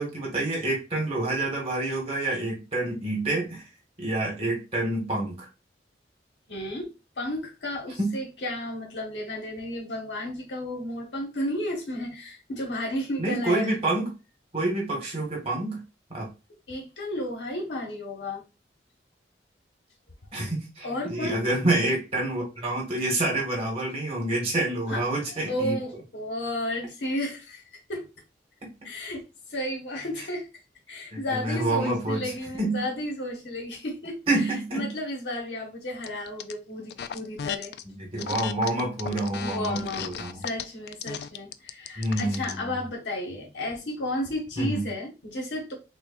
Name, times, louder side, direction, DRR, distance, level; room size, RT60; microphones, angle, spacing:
voice 1, 0.0-3.6 4.0-5.5 8.0-8.1 13.2-14.1 14.5-15.8 16.1-16.3 20.3-25.7 28.6-28.7 31.1-32.3 32.6-32.8 34.3-34.9 37.8-40.4 42.0-42.8 44.6-44.8, right 2 dB, 35° right, 1.6 m, -28 dB
voice 2, 6.5-13.7 16.7-18.4 20.8-21.4 24.9-28.1 28.8-30.5 30.9-37.7 39.4-40.1 40.3-45.7, left 1 dB, 80° left, 1.2 m, -33 dB
sound 1, 36.0-36.5 36.9-37.8 38.2-42.6, left 8 dB, 60° left, 0.3 m, -35 dB
6.2 x 2.3 x 2.4 m
head